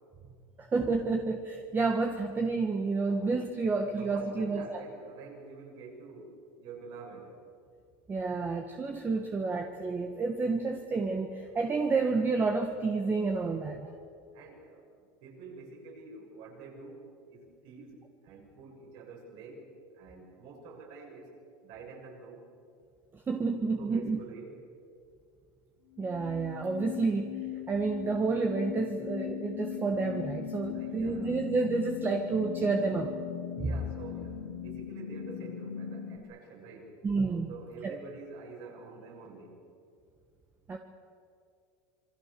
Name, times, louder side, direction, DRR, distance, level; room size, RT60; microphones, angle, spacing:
voice 1, 0.6-4.8 8.1-13.9 23.3-24.2 26.0-33.1 33.6-33.7 37.0-37.5 37.8-38.0 40.7-40.8, right 4 dB, 20° right, 4 dB, 1.5 m, -30 dB
voice 2, 3.9-7.4 14.3-21.3 21.6-22.5 23.7-24.6 30.7-31.3 33.6-37.0 37.5-39.6, right 4 dB, 55° right, 0 dB, 7.3 m, -48 dB
sound 1, 26.0-36.2, left 11 dB, 90° left, 4.0 m, -39 dB
27.0 x 23.5 x 6.9 m, 2.4 s
supercardioid pair, 140°, 11 cm